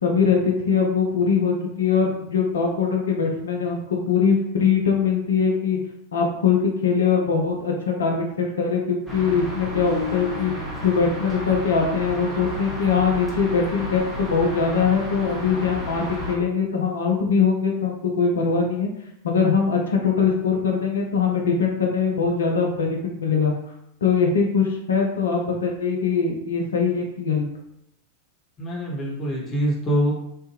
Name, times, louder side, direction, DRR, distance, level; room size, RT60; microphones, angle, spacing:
voice 1, 0.0-5.8 6.1-10.5 10.8-18.9 19.2-23.5 24.0-27.5, left 5 dB, 70° left, 0 dB, 0.6 m, -22 dB
sound 1, 9.1-16.4, left 1 dB, ahead, 0.7 m, -32 dB
voice 2, 28.6-30.1, equal, 30° left, -3 dB, 1.0 m, -24 dB
3.2 x 2.1 x 3.0 m, 0.77 s
figure-of-eight pair, 90°, 0 cm